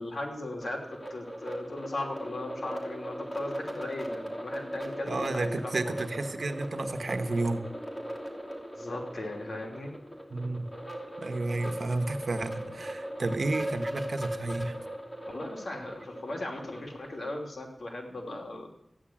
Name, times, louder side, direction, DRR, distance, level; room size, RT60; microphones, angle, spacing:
voice 1, 0.0-6.3 8.7-9.9 13.2-13.4 15.3-18.7, left 2 dB, 80° left, 1 dB, 3.0 m, -38 dB
sound 1, 0.6-17.3, right 1 dB, 20° left, 3.1 m, -39 dB
voice 2, 5.0-7.7 10.3-10.7 11.2-14.7 18.3-18.4, right 2 dB, 80° right, 8 dB, 1.2 m, -31 dB
14.5 x 10.0 x 7.5 m, 0.80 s
cardioid pair, 40°, 0 cm